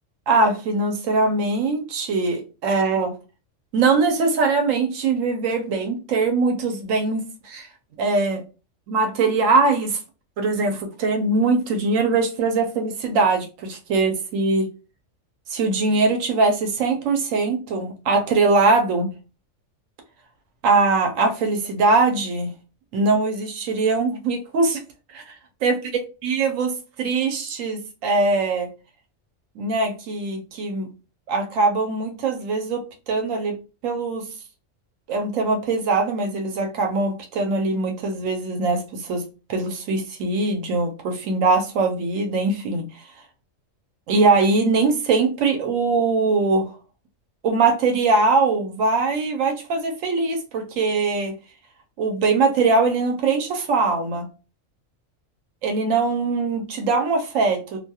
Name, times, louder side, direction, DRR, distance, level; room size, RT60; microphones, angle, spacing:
voice 1, 0.3-3.1 3.7-7.7 8.0-8.4 8.9-10.0 10.4-14.7 15.5-19.1 20.6-22.5 22.9-24.8 25.1-25.8 26.2-28.7 29.6-30.9 31.3-33.6 33.8-34.3 35.1-43.1 44.1-46.7 47.4-51.3 52.0-54.3 55.6-57.8, right 3 dB, 80° right, 1.0 m, -22 dB
2.5 x 2.2 x 2.7 m
omnidirectional pair, 1.3 m